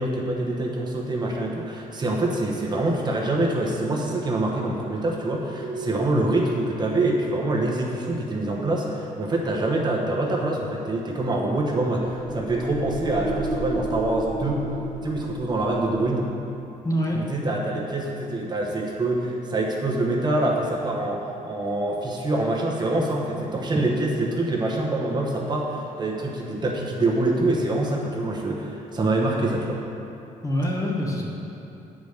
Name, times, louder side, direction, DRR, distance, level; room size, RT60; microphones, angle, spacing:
voice 1, 0.0-14.7 15.0-16.3 17.1-29.8, right 2 dB, 30° right, -2 dB, 1.0 m, -25 dB
Keyboard (musical), 5.6-8.5, right 1 dB, 90° right, 1.5 m, -40 dB
sound 1, 12.1-16.2, right 1 dB, 5° left, 0.9 m, -32 dB
voice 2, 16.8-17.2 30.4-31.2, equal, 25° left, -2 dB, 1.3 m, -25 dB
8.6 x 5.3 x 6.4 m, 2.8 s
cardioid pair, 120°, 14 cm